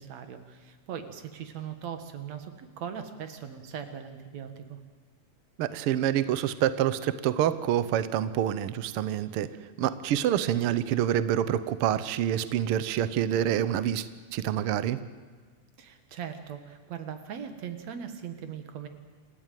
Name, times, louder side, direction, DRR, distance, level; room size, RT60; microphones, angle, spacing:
voice 1, 0.0-4.8 15.8-18.9, right 8 dB, 60° right, 8 dB, 2.6 m, -40 dB
voice 2, 5.6-9.5 9.8-14.1 14.3-15.0, right 10 dB, 85° right, 13 dB, 1.2 m, -27 dB
27.5 x 14.0 x 9.2 m, 1.5 s
omnidirectional pair, 3.6 m